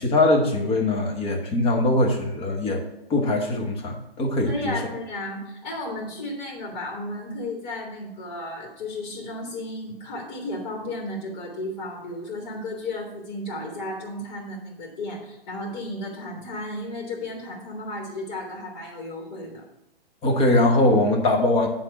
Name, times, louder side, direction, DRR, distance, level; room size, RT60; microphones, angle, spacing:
voice 1, 0.0-2.8 3.1-4.7 20.2-21.7, left 2 dB, 20° left, 1 dB, 1.2 m, -21 dB
voice 2, 4.5-19.6, left 1 dB, 40° left, -2 dB, 2.5 m, -34 dB
9.8 x 3.6 x 6.9 m, 0.90 s
hypercardioid pair, 140°, 31 cm